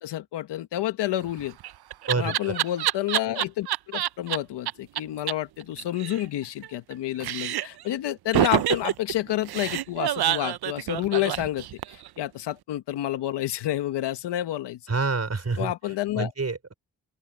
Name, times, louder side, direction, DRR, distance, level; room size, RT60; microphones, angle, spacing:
voice 1, 0.0-1.6 2.2-14.8 15.6-16.3, left 13 dB, 80° left, 1.7 m, -29 dB
Laughter, 1.3-4.4 4.7-4.8 5.0-5.1 5.3-5.4 5.6-6.9 7.2-7.8 8.3-12.1, right 13 dB, 65° right, 0.7 m, -27 dB
voice 2, 2.1-2.5 14.9-16.7, right 4 dB, 40° right, 5.8 m, -28 dB
open air
supercardioid pair, 45°, 41 cm